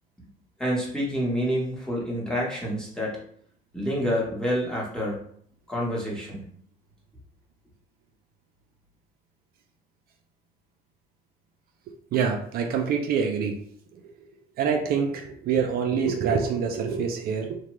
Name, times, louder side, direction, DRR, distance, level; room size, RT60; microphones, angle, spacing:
voice 1, 0.6-3.2 3.7-5.3 5.7-6.4, equal, 5° left, -5 dB, 1.0 m, -28 dB
voice 2, 12.1-13.6 14.6-17.6, right 6 dB, 65° right, 3 dB, 0.4 m, -25 dB
2.8 x 2.1 x 3.0 m, 0.63 s
cardioid pair, 110°, 17 cm